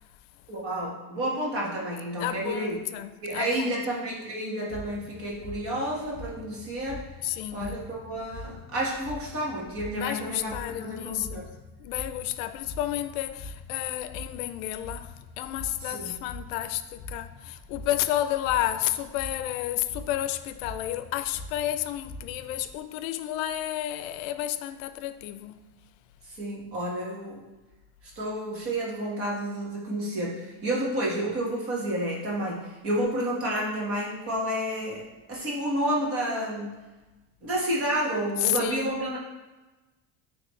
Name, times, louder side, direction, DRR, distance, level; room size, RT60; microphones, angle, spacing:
voice 1, 0.5-2.8 3.2-7.0 7.5-11.5 15.8-16.2 26.3-27.4 28.1-35.0 35.3-36.7 37.4-39.2, right 1 dB, 35° right, 1.5 m, -30 dB
voice 2, 2.2-3.8 7.2-7.8 9.9-11.5 11.8-25.6 38.4-39.0, left 13 dB, 90° left, 0.5 m, -31 dB
sound 1, 4.7-22.8, left 2 dB, 40° left, 1.1 m, -44 dB
9.5 x 3.2 x 3.2 m
cardioid pair, 155°, 40 cm